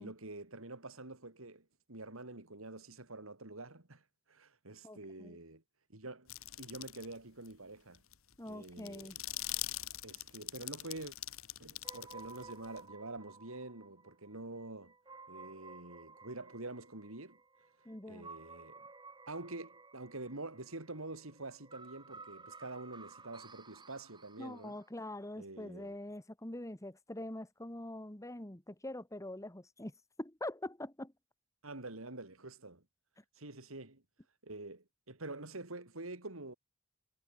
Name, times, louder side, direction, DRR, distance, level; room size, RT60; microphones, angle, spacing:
voice 1, 0.0-4.0 4.3-5.6 5.9-6.3 6.6-8.0 8.5-9.2 10.0-11.1 11.6-14.9 15.3-17.4 18.1-18.9 19.3-24.8 25.4-26.0 31.6-32.8 33.4-34.0 34.4-36.5, right 2 dB, 85° right, 3.3 m, -47 dB
voice 2, 4.8-5.4 8.4-9.2 17.8-18.3 24.4-29.9 30.2-31.1, left 1 dB, 15° left, 1.7 m, -44 dB
sound 1, 6.3-7.1 7.5-7.6 7.9-12.8, left 15 dB, 80° left, 1.9 m, -42 dB
sound 2, 11.8-24.9, right 4 dB, 20° right, 5.1 m, -55 dB
head